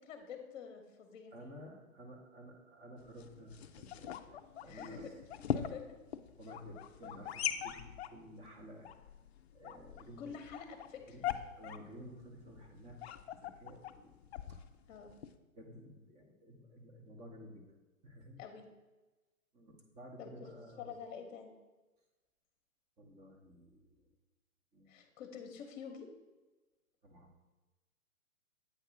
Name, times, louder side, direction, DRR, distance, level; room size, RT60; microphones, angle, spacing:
voice 1, 0.0-1.3 4.6-5.1 5.5-6.0 10.2-11.2 14.9-15.1 18.4-18.6 20.2-21.5 24.9-26.1, left 6 dB, 35° left, 5 dB, 0.9 m, -47 dB
voice 2, 1.3-5.2 6.4-8.9 9.5-10.4 11.0-13.0 13.3-14.1 14.5-14.6 15.5-17.7 18.0-18.4 19.5-21.0 23.0-24.1 24.7-25.3 27.0-27.3, equal, 15° right, 2 dB, 0.8 m, -53 dB
sound 1, 3.0-15.4, left 10 dB, 50° left, 0.4 m, -43 dB
8.2 x 2.9 x 5.7 m, 1.1 s
hypercardioid pair, 130°, 43 cm